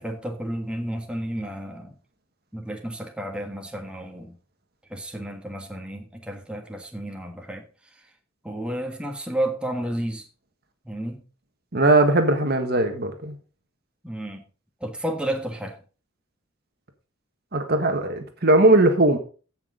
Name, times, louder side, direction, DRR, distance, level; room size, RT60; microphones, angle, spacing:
voice 1, 0.0-1.9 2.5-4.4 4.9-7.6 8.4-10.2 10.8-11.2 14.0-14.4 14.8-15.8, right 1 dB, 5° right, 1.6 m, -31 dB
voice 2, 11.7-13.4 17.5-19.2, right 2 dB, 50° right, 1.5 m, -19 dB
15.5 x 6.0 x 3.9 m
head